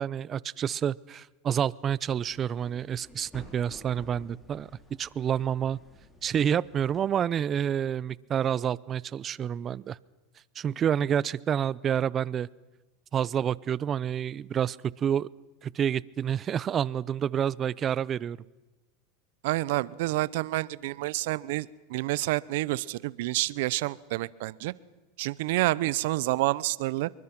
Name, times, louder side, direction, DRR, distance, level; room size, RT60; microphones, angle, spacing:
voice 1, 0.0-4.7 5.0-5.8 6.2-10.0 10.6-12.5 13.1-15.3 15.6-18.4, right 9 dB, 30° right, 22 dB, 0.7 m, -28 dB
sound 1, 2.1-7.1, left 1 dB, 10° left, 5.3 m, -53 dB
voice 2, 19.4-24.7 25.2-27.1, right 18 dB, 70° right, 20 dB, 0.9 m, -28 dB
26.0 x 23.5 x 6.1 m, 1.2 s
hypercardioid pair, 110°, 0 cm